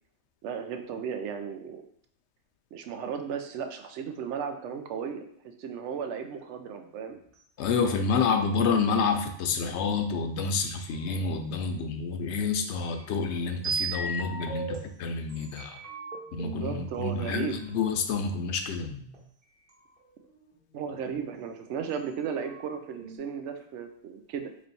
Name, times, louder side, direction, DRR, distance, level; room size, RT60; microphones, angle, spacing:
voice 1, 0.4-1.9 2.7-5.2 5.6-7.2 16.4-17.6 20.7-24.5, right 7 dB, 90° right, 7 dB, 0.9 m, -35 dB
sound 1, 6.2-6.9 10.6-12.0 12.8-14.7 15.3-16.9 17.8-19.1 19.7-19.8 20.0-21.3 21.9-22.0 22.2-23.2, right 3 dB, 55° right, 1.3 m, -38 dB
voice 2, 7.6-15.8 16.3-19.0, left 5 dB, 80° left, 6 dB, 0.9 m, -28 dB
3.2 x 3.1 x 4.0 m, 0.65 s
omnidirectional pair, 1.2 m